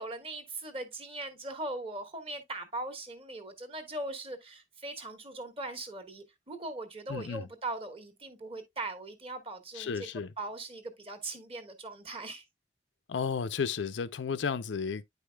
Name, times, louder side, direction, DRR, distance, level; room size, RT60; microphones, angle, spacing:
voice 1, 0.0-10.1 10.4-12.4, right 2 dB, 30° right, 1.2 m, -40 dB
voice 2, 7.1-7.5 9.8-10.3 13.1-15.0, left 6 dB, 90° left, 0.5 m, -33 dB
9.4 x 5.0 x 2.2 m
head